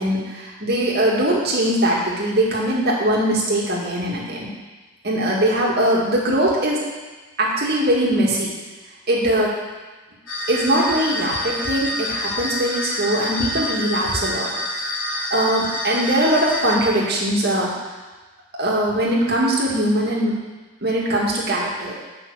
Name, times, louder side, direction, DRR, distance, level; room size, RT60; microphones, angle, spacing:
voice 1, 0.0-4.5 5.0-6.8 7.4-8.5 9.1-9.5 10.5-14.5 15.1-17.7 18.6-20.3 20.8-21.9, right 1 dB, 50° right, -4 dB, 2.2 m, -21 dB
sound 1, 10.3-16.8, left 1 dB, 75° left, 2.6 m, -27 dB
8.8 x 6.0 x 6.4 m, 1.2 s
head